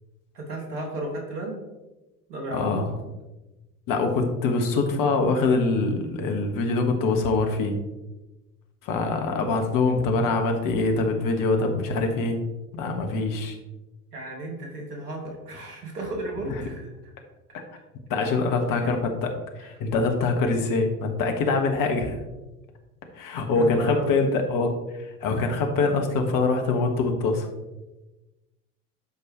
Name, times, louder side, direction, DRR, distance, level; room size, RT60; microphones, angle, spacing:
voice 1, 0.3-1.6 2.3-2.8 14.1-16.9 18.7-18.9 23.5-24.3, right 1 dB, 75° right, 1 dB, 2.4 m, -34 dB
voice 2, 2.5-2.9 3.9-7.8 8.8-12.4 12.7-13.6 16.5-16.6 18.1-22.2 23.1-27.5, left 3 dB, 45° left, 4 dB, 1.7 m, -24 dB
12.5 x 5.3 x 3.2 m, 1.1 s
figure-of-eight pair, 75°, 47 cm